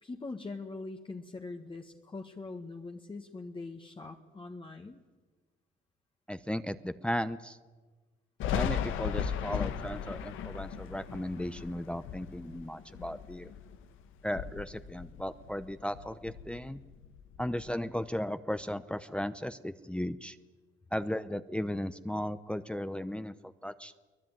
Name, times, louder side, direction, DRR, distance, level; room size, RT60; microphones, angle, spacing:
voice 1, 0.0-5.0, left 3 dB, 25° left, 3 dB, 1.6 m, -42 dB
voice 2, 6.3-7.6 8.5-13.5 14.2-16.8 17.4-20.4 20.9-23.9, left 1 dB, 5° left, 11 dB, 0.8 m, -36 dB
Thunder, 8.4-13.8 14.2-15.7 15.9-17.6, left 8 dB, 90° left, 1.6 m, -37 dB
23.5 x 18.5 x 9.3 m, 1.3 s
cardioid pair, 90°, 20 cm